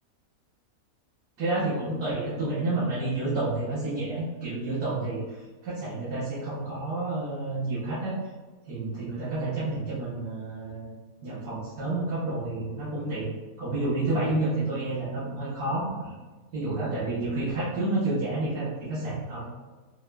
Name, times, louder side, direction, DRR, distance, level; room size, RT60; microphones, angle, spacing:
voice 1, 1.4-5.4 5.6-8.1 8.6-10.9 11.2-13.3 13.6-16.1 16.5-19.4, right 2 dB, 90° right, -11 dB, 1.5 m, -29 dB
3.7 x 2.5 x 2.2 m, 1.3 s
omnidirectional pair, 1.5 m